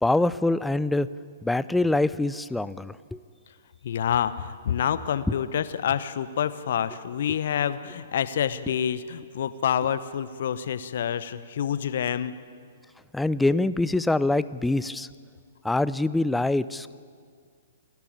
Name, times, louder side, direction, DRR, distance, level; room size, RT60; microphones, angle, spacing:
voice 1, 0.0-1.1 1.4-3.2 13.1-15.1 15.6-16.9, left 2 dB, 5° left, 17 dB, 0.5 m, -24 dB
voice 2, 3.8-12.3, left 9 dB, 55° left, 14 dB, 1.0 m, -27 dB
28.0 x 12.0 x 8.9 m, 2.1 s
figure-of-eight pair, 115°, 0 cm